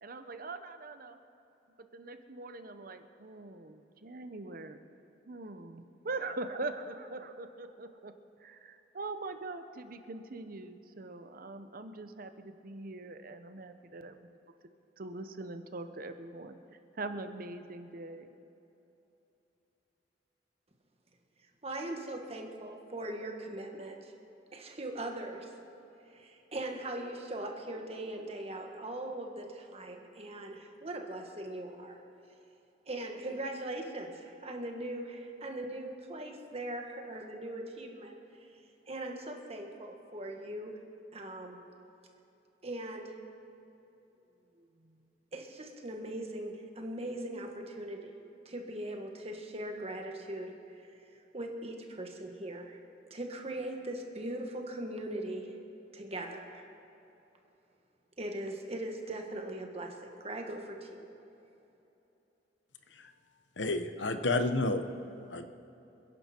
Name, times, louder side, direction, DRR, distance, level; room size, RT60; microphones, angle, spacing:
voice 1, 0.0-1.2 1.8-4.8 5.3-8.1 8.4-14.3 15.0-16.6 16.9-18.3, right 2 dB, 50° right, 9 dB, 0.8 m, -42 dB
voice 2, 21.6-24.1 24.5-25.5 26.1-32.0 32.8-38.1 38.9-40.7 41.1-41.6 42.6-43.1 44.6-44.7 45.3-48.2 48.4-51.0 51.3-52.8 53.1-55.5 55.9-56.6 58.2-61.1, right 1 dB, 35° right, 2 dB, 1.6 m, -40 dB
voice 3, 63.6-64.8 65.3-65.4, left 2 dB, 85° left, 8 dB, 1.0 m, -30 dB
27.5 x 10.5 x 4.5 m, 3.0 s
head